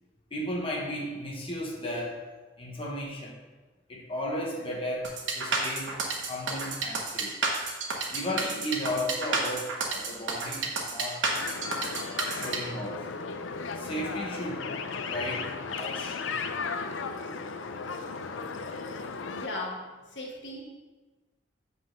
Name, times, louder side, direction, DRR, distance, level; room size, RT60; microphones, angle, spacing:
voice 1, 0.3-2.3 2.6-3.4 3.9-5.9 6.3-7.4 8.1-11.3 12.2-13.1 13.7-14.7 15.0-16.2, left 1 dB, 30° left, -2 dB, 1.0 m, -34 dB
sound 1, 5.0-12.6, right 4 dB, 85° right, 1.2 m, -30 dB
sound 2, 11.3-19.5, left 4 dB, 85° left, 0.5 m, -35 dB
voice 2, 19.3-20.6, left 2 dB, 70° left, -1 dB, 1.3 m, -37 dB
7.5 x 4.0 x 5.1 m, 1.3 s
head